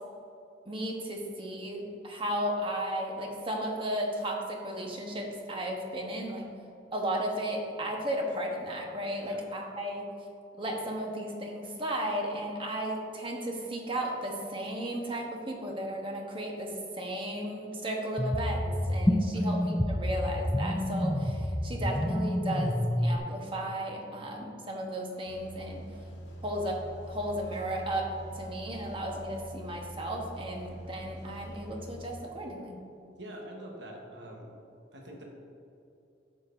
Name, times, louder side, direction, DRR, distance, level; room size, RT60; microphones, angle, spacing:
voice 1, 0.7-6.5 6.9-10.1 10.6-25.9 26.4-32.8, right 1 dB, 30° right, 1 dB, 1.1 m, -34 dB
sound 1, 18.2-23.2, equal, 10° left, 0.3 m, -28 dB
sound 2, 25.3-32.1, right 1 dB, 85° left, 1.6 m, -44 dB
voice 2, 33.2-34.5 34.9-35.2, right 1 dB, 70° right, 0 dB, 1.2 m, -45 dB
11.0 x 7.4 x 2.6 m, 2.7 s
head